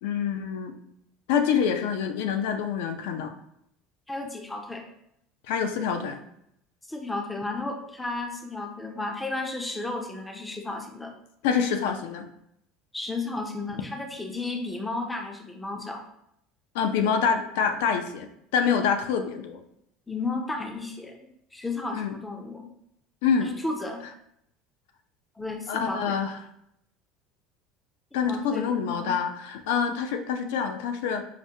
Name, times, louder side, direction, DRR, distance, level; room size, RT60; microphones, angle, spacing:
voice 1, 0.0-0.7 1.3-3.3 5.5-6.2 11.4-12.3 16.7-19.6 21.9-22.1 23.2-23.5 25.7-26.4 28.1-31.2, left 7 dB, 85° left, 6 dB, 0.4 m, -26 dB
voice 2, 4.1-4.8 6.9-11.1 12.9-16.0 20.1-21.2 21.5-22.7 23.4-24.0 25.4-26.2 28.2-29.2, left 2 dB, 5° left, 4 dB, 0.4 m, -33 dB
4.9 x 2.1 x 2.7 m, 0.76 s
cardioid pair, 160°, 0 cm